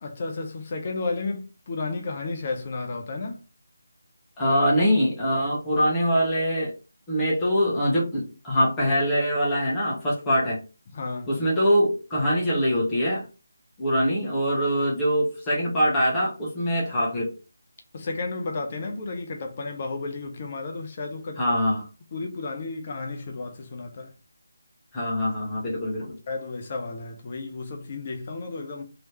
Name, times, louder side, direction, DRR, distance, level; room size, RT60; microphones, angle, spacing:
voice 1, 0.0-3.4 10.9-11.3 17.9-21.4 22.1-24.1 26.3-28.8, left 3 dB, 35° left, 0.6 m, -32 dB
voice 2, 4.4-6.7 7.1-10.6 11.3-13.2 13.8-17.3 21.4-21.9 24.9-26.2, equal, 10° left, 1.2 m, -23 dB
3.1 x 3.0 x 2.9 m
figure-of-eight pair, 155°, 0 cm